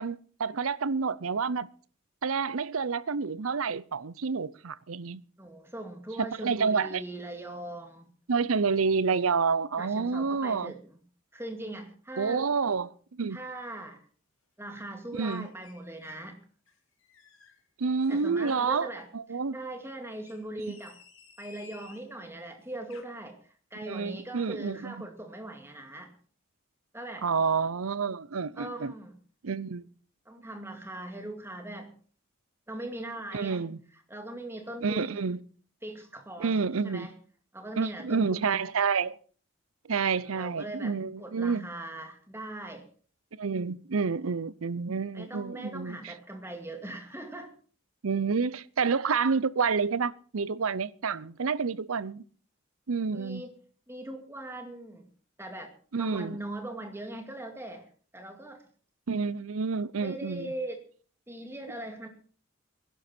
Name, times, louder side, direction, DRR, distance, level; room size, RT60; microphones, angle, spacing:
voice 1, 0.0-1.7 2.2-5.2 6.2-7.0 8.3-10.7 12.2-13.4 15.1-15.5 17.8-18.9 19.1-19.6 20.7-20.8 23.9-25.1 27.2-28.9 29.4-29.9 33.3-33.8 34.8-35.4 36.4-37.1 37.8-39.2 39.9-41.7 43.3-46.1 48.0-52.2 52.9-53.4 55.9-56.4 59.1-60.5, right 5 dB, 90° right, 0.7 m, -29 dB
voice 2, 5.4-8.1 9.8-10.8 11.3-12.5 13.3-14.0 14.6-16.4 18.1-19.1 19.5-21.0 21.4-23.4 23.7-26.1 26.9-27.3 28.6-29.2 30.3-31.9 32.7-33.6 34.1-35.3 35.8-36.6 36.8-37.1 37.5-38.6 40.1-42.9 45.1-47.5 53.1-53.5 53.9-55.1 55.4-57.8 58.1-58.6 60.0-60.8 61.3-62.1, right 1 dB, 10° right, 2.2 m, -40 dB
sound 1, 15.1-16.3 16.7-17.6 18.0-18.7 20.1-22.1 22.7-23.0, left 6 dB, 85° left, 2.9 m, -55 dB
21.5 x 11.5 x 4.4 m
head